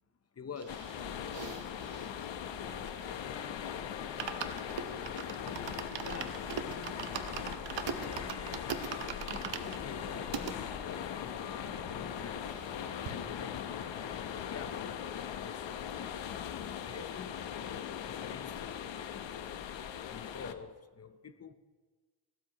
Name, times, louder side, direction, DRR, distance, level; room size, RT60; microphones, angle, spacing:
voice 1, 0.3-1.1 6.0-6.4 9.6-12.7 13.1-15.0 15.4-16.3 16.9-19.3 20.1-21.5, left 6 dB, 35° left, 0.7 m, -48 dB
sound 1, 0.6-3.3 3.7-3.8 4.0-10.6 11.1-11.2 11.4-11.5 11.8-12.8 13.1-13.2, right 8 dB, 80° right, 1.0 m, -41 dB
sound 2, 0.7-20.5, left 9 dB, 90° left, 0.9 m, -40 dB
voice 2, 1.8-2.2 2.5-5.2 5.8-9.1, right 2 dB, 40° right, 5.9 m, -58 dB
Bell / Tick-tock, 2.5-18.9, left 4 dB, 55° left, 1.9 m, -52 dB
28.5 x 12.5 x 2.9 m
wide cardioid pair, 130°, 43 cm